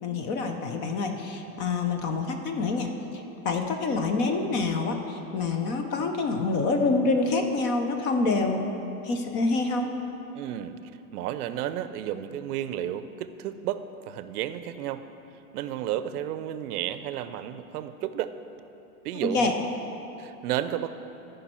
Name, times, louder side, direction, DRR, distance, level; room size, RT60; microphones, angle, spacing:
voice 1, 0.0-8.6 9.0-9.9 19.2-19.5, left 3 dB, 25° left, 5 dB, 0.4 m, -27 dB
voice 2, 10.3-10.8 11.1-15.0 15.5-18.3 19.0-19.5 20.2-21.0, right 11 dB, 90° right, 12 dB, 0.6 m, -32 dB
14.0 x 5.3 x 4.3 m, 2.9 s
supercardioid pair, 150°, 44 cm